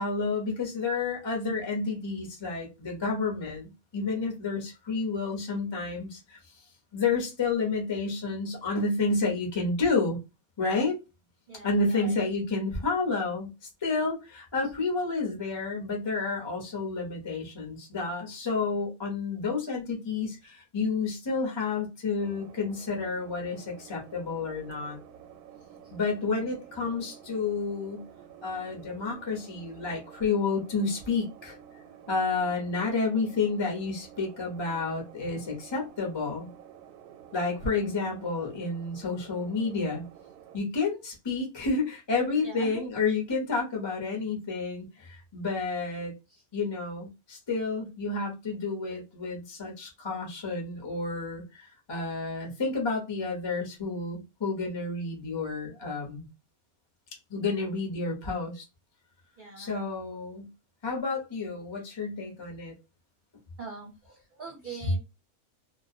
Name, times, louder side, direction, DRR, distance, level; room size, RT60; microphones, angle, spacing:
voice 1, 0.0-6.6 6.9-10.2 10.6-11.0 11.6-25.0 25.9-28.0 28.4-31.6 32.1-36.5 37.3-40.0 40.5-46.1 46.5-56.3 57.3-58.6 59.6-60.5 60.8-62.7, left 4 dB, 30° left, 0.5 m, -30 dB
voice 2, 11.5-12.2 42.4-42.8 46.3-46.4 59.4-59.7 63.6-65.0, right 4 dB, 50° right, 0.6 m, -42 dB
sound 1, 22.2-40.6, right 9 dB, 85° right, 1.1 m, -51 dB
2.4 x 2.1 x 2.5 m
omnidirectional pair, 1.6 m